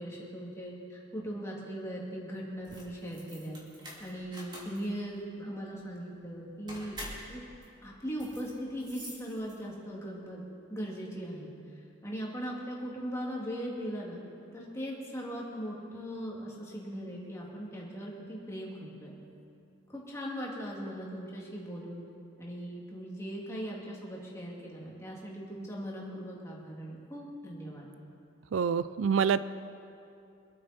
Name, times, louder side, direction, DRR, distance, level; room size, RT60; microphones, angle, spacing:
voice 1, 0.0-3.6 4.0-7.0 7.3-7.4 7.8-11.5 12.0-14.2 14.5-19.1 19.9-22.0 22.4-27.9, equal, 15° left, -4 dB, 2.4 m, -39 dB
sound 1, 2.5-9.9, equal, 25° right, 2.6 m, -47 dB
voice 2, 28.5-29.4, right 6 dB, 90° right, 15 dB, 0.4 m, -26 dB
25.5 x 8.9 x 4.3 m, 2.6 s
head